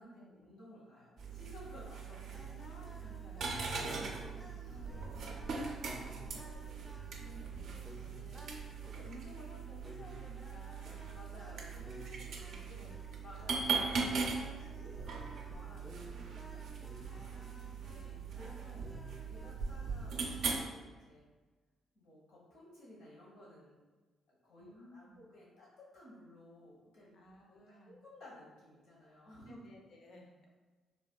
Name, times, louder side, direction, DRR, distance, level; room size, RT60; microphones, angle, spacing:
voice 1, 0.0-2.3 3.7-6.8 7.9-8.4 11.1-11.8 13.2-16.6 17.8-18.9 19.2-21.2 21.9-23.8 24.3-27.2 27.5-29.6, left 1 dB, 85° left, -5 dB, 1.2 m, -56 dB
sound 1, 1.2-20.6, right 4 dB, 70° right, 0.4 m, -40 dB
sound 2, 2.3-19.5, equal, 5° left, 0.3 m, -54 dB
voice 2, 2.4-3.5 4.7-5.0 7.2-7.9 8.4-8.6 8.9-11.1 11.4-13.0 17.1-17.8 24.6-25.3 27.1-28.0 29.4-30.3, left 1 dB, 65° left, 0 dB, 0.5 m, -56 dB
3.4 x 2.3 x 2.2 m, 1.3 s
cardioid pair, 90°, 0 cm